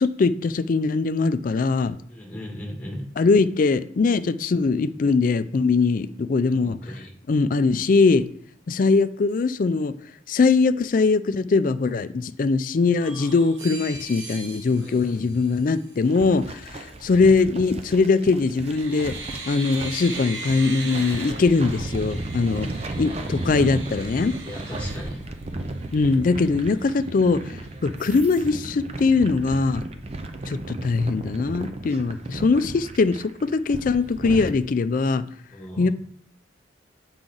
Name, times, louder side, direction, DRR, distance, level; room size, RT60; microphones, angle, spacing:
voice 1, 0.0-2.0 3.2-6.8 7.3-8.3 8.7-9.9 10.3-19.1 19.5-22.7 23.0-24.3 25.9-29.8 30.5-35.3 35.8-35.9, left 4 dB, 45° left, 12 dB, 0.4 m, -21 dB
voice 2, 2.1-3.0 6.5-7.1 14.8-15.5 22.3-23.1 24.4-25.2 35.5-35.9, equal, 5° left, -2 dB, 1.8 m, -38 dB
sound 1, 13.0-16.0 17.8-18.2 18.6-25.8 26.3-26.4 26.7-27.5 28.0-28.5, right 3 dB, 75° right, 1.1 m, -39 dB
sound 2, 16.0-34.5, right 2 dB, 35° right, 0.5 m, -35 dB
7.4 x 4.9 x 3.9 m, 0.63 s
head